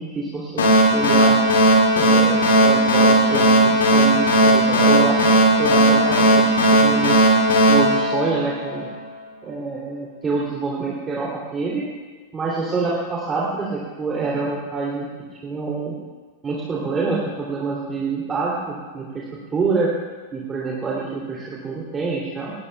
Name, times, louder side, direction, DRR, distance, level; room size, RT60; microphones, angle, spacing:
voice 1, 0.0-1.4 1.9-5.3 5.6-7.2 7.7-8.9 9.4-11.9 12.3-15.1 15.4-15.9 16.4-19.2 19.5-19.9 20.3-22.5, right 4 dB, 20° right, -5 dB, 3.2 m, -26 dB
sound 1, 0.6-8.9, right 1 dB, 65° left, 3.1 m, -16 dB
20.0 x 19.5 x 2.4 m, 1.4 s
figure-of-eight pair, 90°, 0 cm